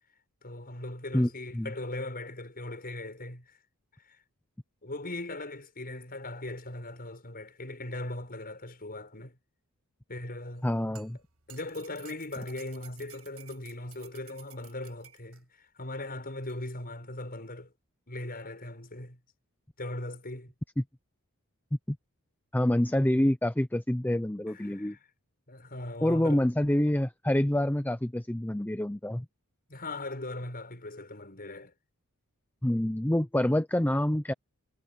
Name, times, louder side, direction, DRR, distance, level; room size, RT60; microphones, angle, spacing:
voice 1, 0.4-3.5 4.1-4.2 4.8-9.4 10.1-10.7 11.5-17.7 18.1-19.2 19.8-20.5 24.5-25.0 25.5-26.4 29.7-31.7, left 2 dB, 40° left, 6.4 m, -39 dB
voice 2, 10.6-11.2 21.9-22.0 22.5-25.0 26.0-29.3 32.6-34.3, left 1 dB, 10° left, 0.6 m, -27 dB
sound 1, 10.6-15.4 16.5-16.6, right 13 dB, 70° right, 7.6 m, -54 dB
head